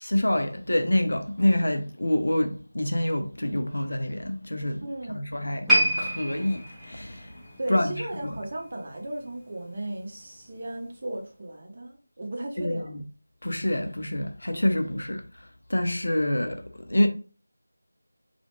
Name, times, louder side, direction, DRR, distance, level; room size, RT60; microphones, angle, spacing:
voice 1, 0.1-5.7 6.0-7.4 7.7-8.4 12.6-13.0 13.4-17.1, left 1 dB, 75° left, 0.5 m, -27 dB
voice 2, 4.8-5.3 7.6-12.9, right 1 dB, 40° right, 0.7 m, -36 dB
sound 1, 5.7-9.0 9.3-9.5 10.2-10.3, equal, ahead, 0.5 m, -28 dB
2.4 x 2.1 x 2.9 m
figure-of-eight pair, 170°, 0 cm